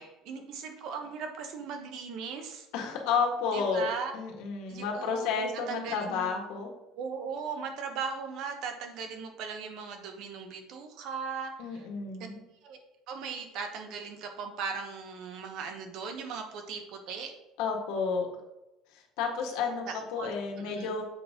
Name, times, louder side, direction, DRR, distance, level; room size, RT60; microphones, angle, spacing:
voice 1, 0.0-2.7 3.5-4.1 4.7-6.3 7.0-11.9 12.6-12.8 13.1-17.3 19.9-20.9, right 5 dB, 50° right, 5 dB, 1.1 m, -38 dB
voice 2, 2.7-6.7 11.6-12.4 17.6-18.3 19.2-21.0, left 5 dB, 75° left, 1 dB, 1.7 m, -31 dB
7.6 x 4.1 x 5.0 m, 0.95 s
cardioid pair, 180°, 0 cm